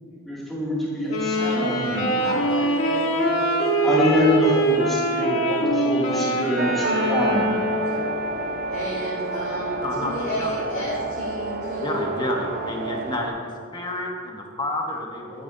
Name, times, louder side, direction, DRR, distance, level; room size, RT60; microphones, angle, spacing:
voice 1, 0.2-1.4 1.6-2.2 3.8-7.5, equal, ahead, -8 dB, 2.4 m, -24 dB
Wind instrument woodwind instrument, 1.1-8.3, equal, 80° left, 1.4 m, -23 dB
voice 2, 1.3-1.8 2.2-4.1 7.7-8.1 8.7-12.1, equal, 55° left, -11 dB, 2.7 m, -32 dB
sound 1, 6.6-13.3, right 3 dB, 45° right, 0.5 m, -29 dB
voice 3, 9.8-10.9 11.8-15.4, left 1 dB, 20° left, 1 dB, 1.0 m, -30 dB
12.5 x 9.0 x 2.7 m, 2.2 s
head